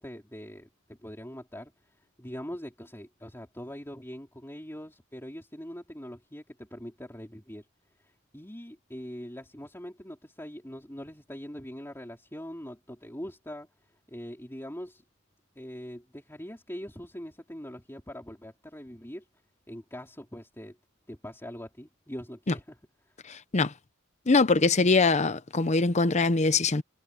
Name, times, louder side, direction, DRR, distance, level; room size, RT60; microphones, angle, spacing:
voice 1, 0.0-7.7 8.0-13.7 14.1-15.0 15.6-19.3 19.7-20.8 21.1-22.8 23.1-23.2, equal, 10° left, 3.7 m, -42 dB
voice 2, 23.3-23.7 24.3-26.8, left 3 dB, 30° left, 0.7 m, -23 dB
head